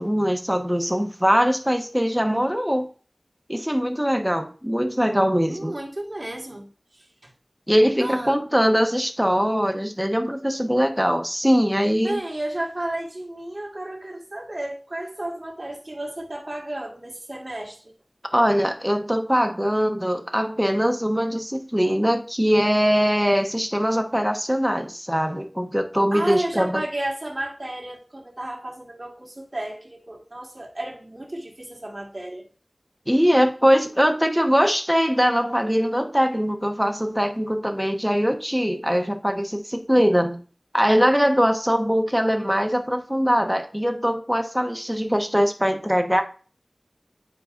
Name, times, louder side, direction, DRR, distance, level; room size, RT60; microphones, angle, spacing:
voice 1, 0.0-2.9 3.5-5.7 7.7-12.2 18.3-26.8 33.1-40.4 40.7-46.2, equal, 5° right, 5 dB, 1.1 m, -22 dB
voice 2, 5.5-6.7 7.2-7.3 8.0-8.3 12.0-17.8 26.1-32.5, right 1 dB, 50° right, 0 dB, 1.8 m, -32 dB
9.5 x 4.6 x 2.5 m, 0.39 s
wide cardioid pair, 50°, 0 cm